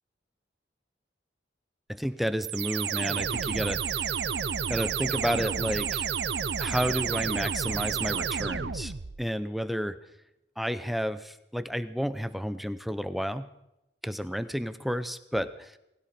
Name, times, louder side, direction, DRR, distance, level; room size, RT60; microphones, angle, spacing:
voice 1, 1.9-4.2 4.7-6.1 6.6-8.9 9.2-10.0 10.6-13.5 14.0-15.8, equal, ahead, 12 dB, 0.7 m, -31 dB
sound 1, 2.4-9.2, right 7 dB, 65° right, 0.7 m, -30 dB
19.5 x 16.0 x 4.4 m, 0.88 s
head